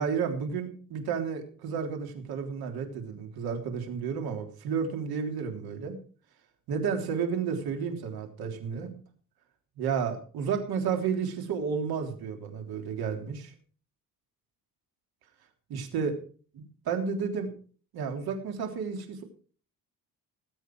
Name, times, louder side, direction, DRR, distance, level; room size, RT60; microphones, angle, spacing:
voice 1, 0.0-6.0 6.7-8.9 9.8-13.5 15.7-16.1 16.9-17.5 17.9-19.2, right 6 dB, 85° right, 4 dB, 3.4 m, -31 dB
19.0 x 8.5 x 4.7 m, 0.41 s
cardioid pair, 130°, 36 cm